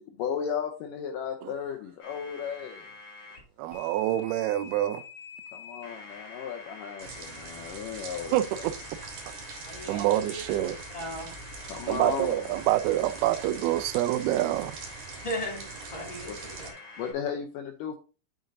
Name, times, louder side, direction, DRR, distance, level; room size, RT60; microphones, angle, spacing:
voice 1, 0.0-3.2 5.5-8.7 11.6-12.5 16.3-16.4 17.0-18.0, left 7 dB, 85° left, 1.9 m, -35 dB
sound 1, 2.0-3.4 3.7-17.1, left 4 dB, 35° left, 3.6 m, -47 dB
voice 2, 3.6-5.0 8.3-8.7 9.9-10.7 11.9-14.8, right 14 dB, 80° right, 2.3 m, -26 dB
sound 2, 7.0-16.7, right 5 dB, 55° right, 2.7 m, -43 dB
voice 3, 9.7-11.3 11.7-11.8 15.2-16.7, equal, 10° left, 1.5 m, -38 dB
9.0 x 6.4 x 2.7 m
omnidirectional pair, 4.8 m